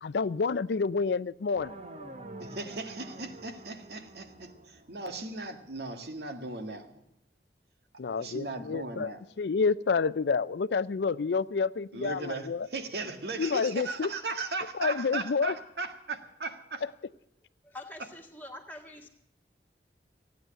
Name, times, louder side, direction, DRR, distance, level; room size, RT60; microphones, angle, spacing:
voice 1, 0.0-1.7 8.0-9.1 9.4-12.7 13.4-14.1 14.8-15.5, left 5 dB, 75° left, 19 dB, 0.5 m, -29 dB
sound 1, 1.5-5.6, right 1 dB, 40° right, 1.0 m, -47 dB
voice 2, 2.4-7.0 8.2-9.2 11.9-16.8, right 3 dB, 70° right, 6 dB, 1.8 m, -37 dB
voice 3, 17.6-19.1, left 1 dB, 10° left, 2 dB, 1.9 m, -45 dB
16.0 x 9.4 x 7.5 m, 0.81 s
head